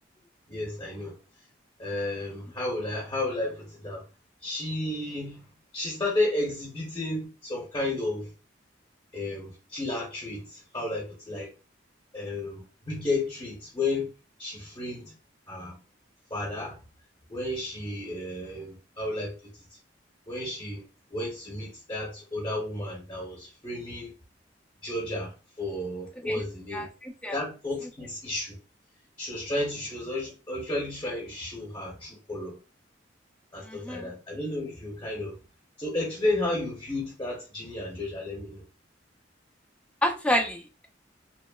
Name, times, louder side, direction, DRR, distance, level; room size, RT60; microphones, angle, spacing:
voice 1, 0.5-1.2 1.8-4.0 4.4-5.4 5.7-8.3 9.1-11.5 12.1-14.1 14.4-15.1 15.5-15.8 16.3-16.8 17.3-19.3 20.3-20.8 21.1-24.1 24.8-25.3 25.6-26.9 27.3-28.6 29.2-32.6 33.5-35.4 35.8-38.6, left 2 dB, 25° left, 0.8 m, -32 dB
voice 2, 26.7-27.4 33.6-34.1 40.0-40.6, equal, 5° left, 0.3 m, -29 dB
2.8 x 2.0 x 2.2 m
head